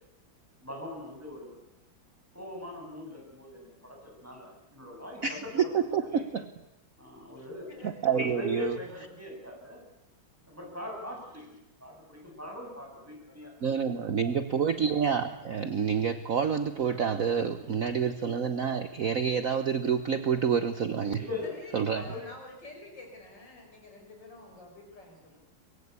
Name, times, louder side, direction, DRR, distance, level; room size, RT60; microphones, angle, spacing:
voice 1, 0.6-1.6 2.3-5.7 6.1-6.2 7.0-7.7 8.1-9.8 10.5-13.5 13.8-13.9 21.2-21.5 21.9-22.3, left 2 dB, 5° right, -1 dB, 7.9 m, -41 dB
voice 2, 5.2-6.5 7.8-8.8 13.6-21.3 21.7-22.0, right 7 dB, 50° right, 9 dB, 1.3 m, -28 dB
voice 3, 7.7-8.3 21.4-25.4, left 2 dB, 60° left, 2 dB, 6.4 m, -48 dB
23.5 x 22.5 x 8.3 m, 0.88 s
omnidirectional pair, 2.2 m